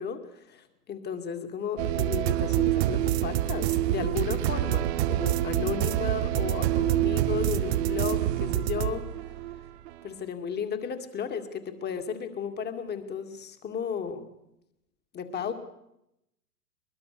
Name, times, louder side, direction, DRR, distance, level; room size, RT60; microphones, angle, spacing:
voice 1, 0.0-9.1 10.0-14.3 15.1-15.5, left 7 dB, 20° left, 7 dB, 2.4 m, -34 dB
sound 1, 1.8-9.9, right 13 dB, 45° right, 1.0 m, -26 dB
22.5 x 21.5 x 6.9 m, 0.83 s
figure-of-eight pair, 110°, 48 cm